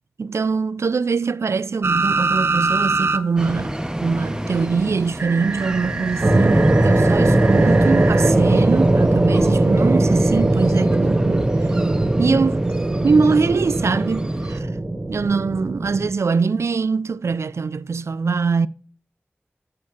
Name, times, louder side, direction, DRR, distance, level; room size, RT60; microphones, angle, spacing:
voice 1, 0.2-11.8 12.2-12.7 13.0-14.7 15.1-18.7, right 4 dB, 85° right, 0.4 m, -23 dB
sound 1, 1.8-3.2 3.5-3.6 5.2-8.3 10.0-10.1, right 3 dB, 65° right, 0.8 m, -24 dB
sound 2, 3.4-14.6, right 1 dB, 15° right, 0.7 m, -32 dB
sound 3, 6.2-16.1, right 2 dB, 35° right, 1.1 m, -19 dB
8.5 x 4.9 x 6.9 m
wide cardioid pair, 55°, 5 cm